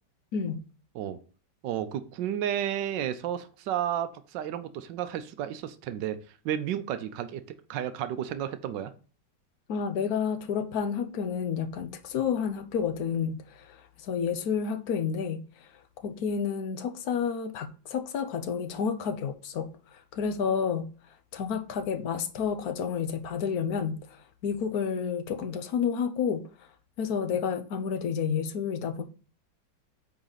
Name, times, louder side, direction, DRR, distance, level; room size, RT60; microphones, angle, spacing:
voice 1, 0.3-0.6 9.7-15.4 16.0-20.9 21.3-24.1 24.4-26.5 27.0-29.0, left 6 dB, 60° left, 1.2 m, -30 dB
voice 2, 1.6-6.2 6.4-7.4 7.7-8.9, right 10 dB, 80° right, 1.4 m, -32 dB
8.9 x 4.1 x 3.9 m
omnidirectional pair, 1.9 m